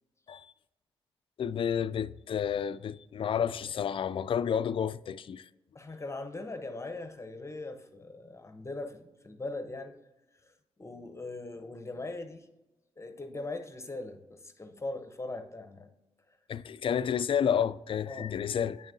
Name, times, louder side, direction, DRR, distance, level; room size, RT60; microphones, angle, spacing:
voice 1, 1.4-5.5 16.5-18.9, left 8 dB, 55° left, 0.4 m, -30 dB
voice 2, 5.7-10.0 10.4-12.5 13.0-15.9 16.3-16.4 18.1-18.3, left 2 dB, 25° left, 0.8 m, -40 dB
9.1 x 5.8 x 2.7 m
supercardioid pair, 55°, 11 cm